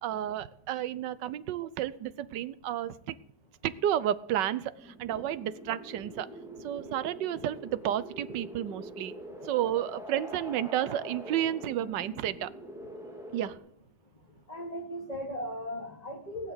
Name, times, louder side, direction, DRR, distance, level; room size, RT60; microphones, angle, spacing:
voice 1, 0.0-3.1 3.6-6.3 6.6-9.1 9.4-12.5 13.3-13.6, right 11 dB, 85° right, 16 dB, 1.4 m, -31 dB
sound 1, 4.8-13.6, equal, ahead, 2.2 m, -45 dB
voice 2, 14.5-16.5, equal, 20° left, 2 dB, 2.7 m, -37 dB
19.0 x 6.7 x 9.5 m, 0.70 s
omnidirectional pair, 1.8 m